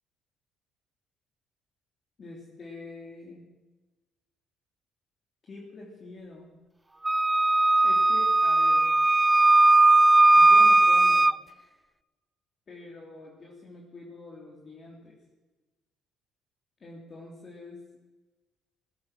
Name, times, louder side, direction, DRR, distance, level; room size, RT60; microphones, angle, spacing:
voice 1, 2.2-3.4 5.5-6.5 7.8-8.9 10.4-11.3 12.7-15.2 16.8-17.8, left 2 dB, 40° left, -3 dB, 3.2 m, -45 dB
Wind instrument woodwind instrument, 7.0-11.4, right 2 dB, 15° right, 0.4 m, -18 dB
17.5 x 9.3 x 6.2 m, 1.2 s
cardioid pair, 90°, 0 cm